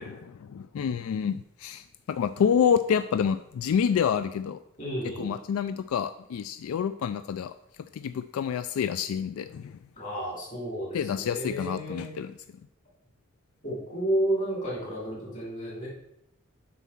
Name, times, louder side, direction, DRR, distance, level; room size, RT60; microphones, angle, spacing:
voice 1, 0.0-4.6 5.2-7.5 7.9-9.7 10.9-12.3, left 7 dB, 85° left, 11 dB, 0.3 m, -28 dB
voice 2, 4.8-5.3 10.0-12.1 13.6-15.9, right 1 dB, 35° left, -5 dB, 3.2 m, -31 dB
7.2 x 4.1 x 5.8 m, 0.79 s
head